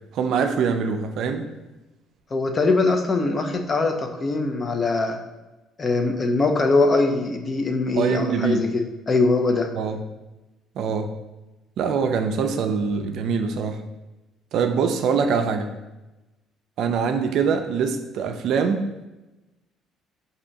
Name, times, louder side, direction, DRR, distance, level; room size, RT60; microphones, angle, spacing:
voice 1, 0.1-1.5 8.0-8.7 9.8-10.0 10.8-11.1 11.8-13.8 14.5-15.7 16.8-18.8, right 6 dB, 70° right, 6 dB, 0.4 m, -23 dB
voice 2, 2.3-5.2 5.8-9.7, left 3 dB, 35° left, 4 dB, 0.5 m, -22 dB
4.9 x 2.7 x 2.6 m, 1.1 s
supercardioid pair, 85°, 0 cm